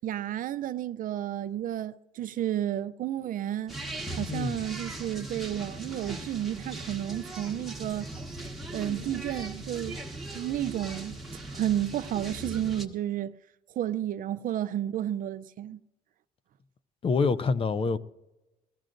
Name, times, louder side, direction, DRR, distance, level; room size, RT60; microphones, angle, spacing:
voice 1, 0.0-3.7 4.2-8.1 8.7-10.0 10.3-11.2 11.5-13.3 13.8-15.8, right 11 dB, 55° right, 0.5 m, -31 dB
sound 1, 3.7-12.9, right 2 dB, ahead, 1.5 m, -39 dB
voice 2, 4.3-4.6 17.0-18.0, left 4 dB, 35° left, 0.6 m, -26 dB
21.5 x 15.0 x 2.6 m
cardioid pair, 110°, 17 cm